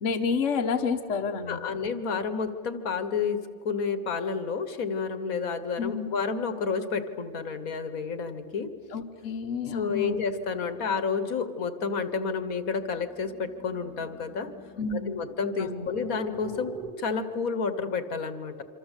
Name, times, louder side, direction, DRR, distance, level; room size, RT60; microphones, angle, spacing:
voice 1, 0.0-1.6 5.8-6.1 8.9-10.2 14.8-15.2 15.6-15.9, left 5 dB, 60° left, 3 dB, 1.5 m, -29 dB
voice 2, 1.5-8.7 9.7-14.5 14.9-18.6, left 5 dB, 75° left, 11 dB, 1.8 m, -30 dB
sound 1, 8.5-16.9, right 4 dB, ahead, 2.2 m, -48 dB
26.5 x 25.0 x 8.2 m, 2.3 s
omnidirectional pair, 1.5 m